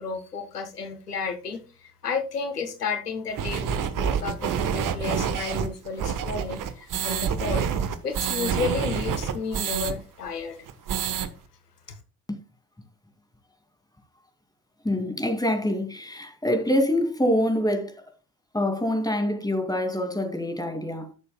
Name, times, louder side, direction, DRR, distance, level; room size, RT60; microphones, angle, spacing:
voice 1, 0.0-7.7 8.0-10.6, left 5 dB, 90° left, 1.0 m, -32 dB
sound 1, 3.4-9.9 10.3-10.4 10.7-11.3, right 7 dB, 45° right, 1.2 m, -27 dB
voice 2, 14.8-18.0 18.5-21.1, left 1 dB, 10° left, 2.4 m, -25 dB
13.0 x 6.9 x 2.2 m
figure-of-eight pair, 50°, 46 cm